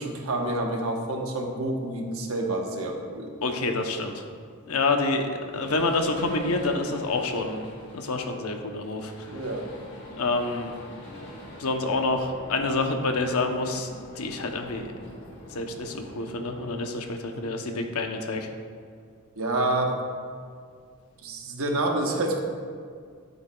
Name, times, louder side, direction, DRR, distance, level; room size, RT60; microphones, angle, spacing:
voice 1, 0.0-3.3 9.3-9.6 19.4-20.0 21.2-22.4, right 2 dB, 75° right, 2 dB, 1.1 m, -28 dB
voice 2, 3.4-4.2 4.7-7.6 7.9-9.3 10.2-10.7 11.6-14.9 15.5-18.5, left 3 dB, 85° left, 4 dB, 0.8 m, -28 dB
sound 1, 5.4-16.8, left 1 dB, 50° left, 1.9 m, -44 dB
12.0 x 8.2 x 2.3 m, 2.1 s
head